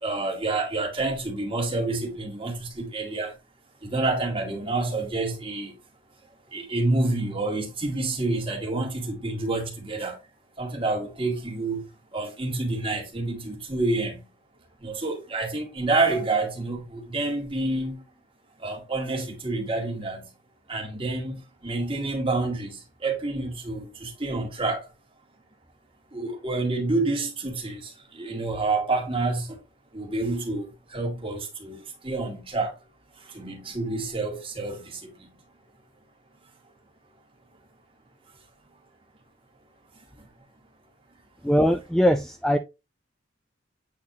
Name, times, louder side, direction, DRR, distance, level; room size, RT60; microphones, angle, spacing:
voice 1, 0.0-3.3 3.8-5.7 6.5-10.2 10.6-11.9 12.1-14.2 14.8-18.0 18.6-20.3 20.7-24.8 26.1-29.6 29.9-32.7 33.3-35.1, right 2 dB, 25° right, 2.2 m, -28 dB
voice 2, 41.4-42.6, equal, 5° left, 0.4 m, -21 dB
8.6 x 4.1 x 2.7 m
head